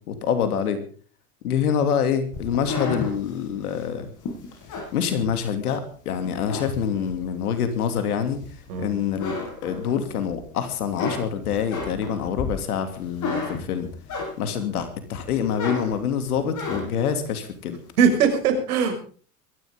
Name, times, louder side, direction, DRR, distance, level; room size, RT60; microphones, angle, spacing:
voice 1, 0.1-0.8 1.4-4.1 4.9-8.4 8.8-9.3 9.6-13.9 14.4-17.8, left 7 dB, 75° left, 9 dB, 3.0 m, -26 dB
sound 1, 2.3-5.7 6.2-7.3 7.8-8.8 9.1-10.3 10.7-14.7 15.1-17.1, left 4 dB, 40° left, 7.5 m, -32 dB
voice 2, 18.0-19.0, right 6 dB, 70° right, 6 dB, 6.2 m, -20 dB
22.0 x 14.5 x 3.8 m, 0.42 s
hypercardioid pair, 90°, 45 cm